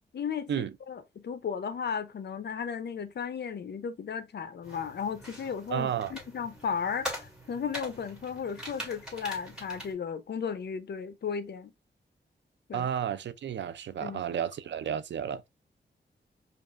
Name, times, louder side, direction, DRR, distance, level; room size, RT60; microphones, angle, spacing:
voice 1, 0.1-11.7 12.7-12.9 14.0-14.2, left 6 dB, 65° left, 0.6 m, -35 dB
sound 1, 4.6-9.9, equal, 5° right, 1.5 m, -42 dB
voice 2, 5.7-6.1 12.7-15.5, right 9 dB, 75° right, 0.4 m, -32 dB
5.2 x 2.3 x 2.4 m
wide cardioid pair, 95°, 19 cm